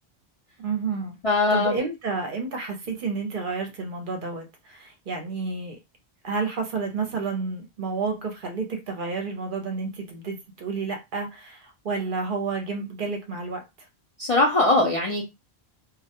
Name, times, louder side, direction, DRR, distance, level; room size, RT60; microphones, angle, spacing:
voice 1, 0.6-1.2 1.5-5.8 6.2-13.6, right 4 dB, 60° right, 0.7 m, -30 dB
voice 2, 1.2-1.8 14.2-15.2, left 2 dB, 50° left, 0.4 m, -21 dB
2.2 x 2.1 x 2.8 m
omnidirectional pair, 1.1 m